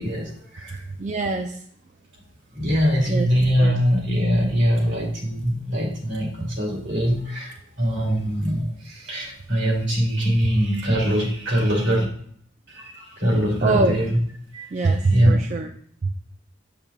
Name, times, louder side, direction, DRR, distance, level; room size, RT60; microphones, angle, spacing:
voice 1, 0.0-0.8 2.5-12.1 12.7-14.2 14.5-15.4, equal, 70° right, -1 dB, 2.5 m, -23 dB
voice 2, 1.0-1.6 3.1-3.3 3.6-3.7 13.6-14.0 14.7-15.7 16.0-16.1, right 3 dB, 40° right, 5 dB, 0.4 m, -23 dB
7.0 x 6.8 x 2.3 m, 0.63 s
head